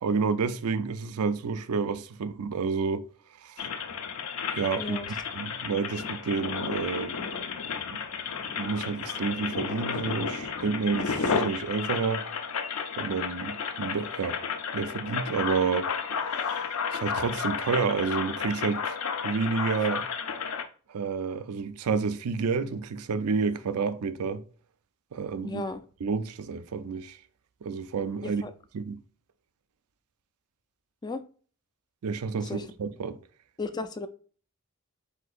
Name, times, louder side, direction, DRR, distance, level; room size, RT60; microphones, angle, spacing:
voice 1, 0.0-3.1 3.4-3.6 4.5-5.0 5.3-7.2 7.9-8.0 8.6-12.2 13.0-14.4 14.7-15.9 16.3-18.9 19.2-20.1 20.9-24.4 25.1-25.6 26.0-27.2 27.6-28.4 28.7-29.0 32.0-33.2, right 5 dB, 80° right, 0.4 m, -29 dB
sound 1, 3.6-20.6, left 6 dB, 70° left, 0.6 m, -32 dB
voice 2, 25.4-25.8 28.2-28.5 31.0-31.2 32.4-32.6 33.6-34.1, left 3 dB, 20° left, 0.3 m, -34 dB
7.8 x 2.8 x 2.4 m
head